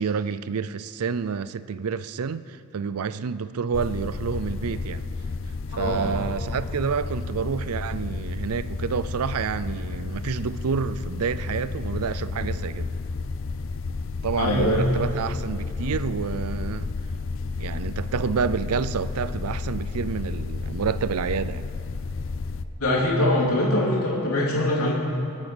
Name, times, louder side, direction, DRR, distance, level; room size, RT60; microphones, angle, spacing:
voice 1, 0.0-5.1 5.8-12.9 14.2-16.9 17.6-21.7, right 6 dB, 85° right, 0.5 m, -28 dB
sound 1, 3.7-22.6, left 3 dB, 60° left, 0.6 m, -31 dB
voice 2, 5.7-6.2 14.4-15.1 22.8-24.9, left 1 dB, 75° left, 3.2 m, -23 dB
23.0 x 8.9 x 6.2 m
head